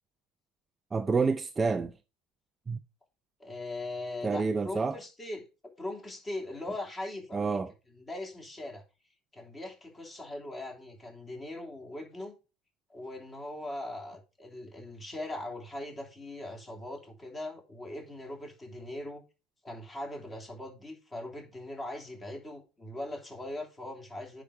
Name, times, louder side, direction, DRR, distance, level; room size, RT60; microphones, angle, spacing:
voice 1, 0.9-1.9 2.7-2.8 4.2-5.0 7.3-7.7, right 4 dB, 20° right, 0.5 m, -28 dB
voice 2, 3.4-5.5 5.8-7.6 7.9-8.8 9.3-12.4 12.9-19.2 19.6-24.4, left 1 dB, 20° left, 3.4 m, -40 dB
9.9 x 5.1 x 4.9 m
supercardioid pair, 125°, 0 cm